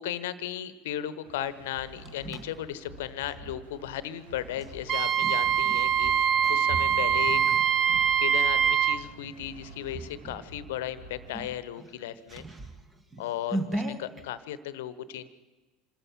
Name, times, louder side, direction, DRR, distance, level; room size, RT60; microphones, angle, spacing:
voice 1, 0.0-7.8 8.2-12.5 13.2-15.3, left 11 dB, 65° left, 16 dB, 1.0 m, -36 dB
sound 1, 1.2-11.4, right 1 dB, 80° right, 3.2 m, -49 dB
sound 2, 1.6-3.6 4.5-8.8 9.3-9.5 9.9-10.5 10.9-11.0 11.3-14.2, right 2 dB, 20° right, 1.8 m, -39 dB
Wind instrument woodwind instrument, 4.9-9.0, right 8 dB, 40° right, 0.8 m, -24 dB
26.0 x 13.5 x 7.4 m, 1.2 s
figure-of-eight pair, 70°, 0 cm